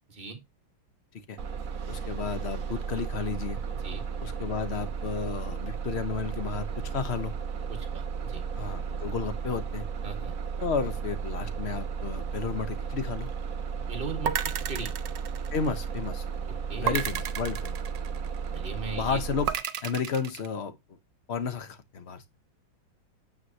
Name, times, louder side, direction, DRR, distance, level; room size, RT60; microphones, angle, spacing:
Bus, 1.4-19.5, right 6 dB, 50° right, 1.4 m, -34 dB
voice 1, 1.9-3.6 4.2-7.3 8.5-9.9 10.6-13.3 15.5-16.2 16.8-17.8 18.9-19.5 19.8-20.7 21.3-22.2, left 6 dB, 45° left, 1.0 m, -32 dB
voice 2, 7.7-8.4 10.0-10.3 13.9-14.9 16.7-16.9 18.5-19.2, right 4 dB, 30° right, 1.7 m, -38 dB
sound 1, 14.2-16.0 16.9-18.5 19.5-20.5, right 10 dB, 70° right, 1.5 m, -32 dB
9.6 x 7.9 x 2.8 m
omnidirectional pair, 2.2 m